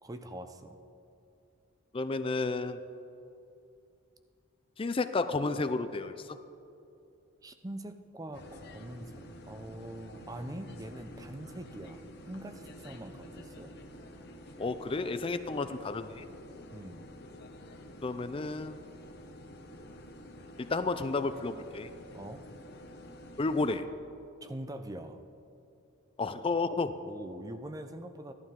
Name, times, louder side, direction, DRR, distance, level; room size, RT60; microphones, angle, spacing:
voice 1, 0.0-0.8 7.4-13.8 16.7-17.1 22.1-22.4 24.4-25.2 27.0-28.3, right 1 dB, 20° right, 8 dB, 0.6 m, -43 dB
voice 2, 1.9-2.8 4.8-6.4 14.6-16.2 18.0-18.9 20.6-21.9 23.4-23.9 26.2-26.9, left 3 dB, 25° left, 11 dB, 0.4 m, -32 dB
sound 1, 8.3-23.8, equal, 55° left, 1.0 m, -49 dB
15.5 x 11.5 x 3.7 m, 2.7 s
head